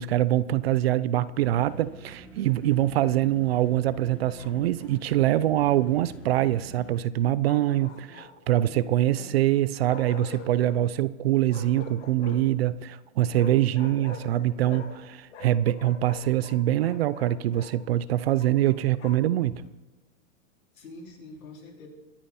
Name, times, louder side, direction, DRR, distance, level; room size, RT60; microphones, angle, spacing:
voice 1, 0.0-19.6, right 13 dB, 50° right, 17 dB, 0.5 m, -24 dB
sound 1, 1.4-6.9, left 1 dB, 5° left, 2.4 m, -46 dB
Bark, 4.3-5.0 7.4-8.5 9.9-10.8 11.5-12.6 13.3-15.0 15.3-17.7 18.4-19.3, left 5 dB, 60° left, 2.9 m, -44 dB
voice 2, 7.5-8.2 8.6-9.6 20.7-21.9, left 3 dB, 80° left, -1 dB, 4.5 m, -47 dB
24.5 x 8.9 x 4.3 m, 1.2 s
hypercardioid pair, 150°, 40 cm